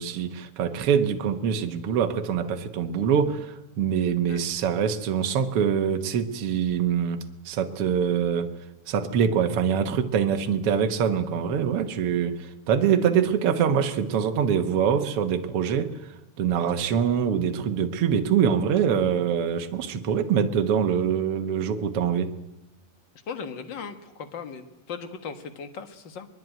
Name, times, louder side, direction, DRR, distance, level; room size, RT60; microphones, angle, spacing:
voice 1, 0.0-8.5 8.9-16.0 16.4-22.3, right 7 dB, 55° right, 7 dB, 1.8 m, -24 dB
voice 2, 23.3-26.3, left 6 dB, 45° left, 8 dB, 1.6 m, -38 dB
22.0 x 21.5 x 9.2 m, 0.99 s
omnidirectional pair, 3.9 m